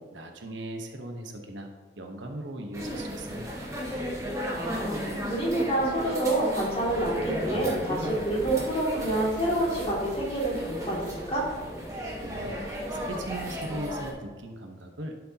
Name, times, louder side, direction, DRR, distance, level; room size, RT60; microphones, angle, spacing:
voice 1, 0.1-1.7 2.0-3.7 12.2-12.6 12.9-15.1, right 1 dB, 85° right, 3 dB, 1.1 m, -38 dB
sound 1, 2.7-14.1, equal, 15° right, 1.4 m, -34 dB
voice 2, 4.5-11.4, right 1 dB, 30° left, -5 dB, 2.4 m, -28 dB
11.5 x 6.4 x 2.9 m, 1.3 s
head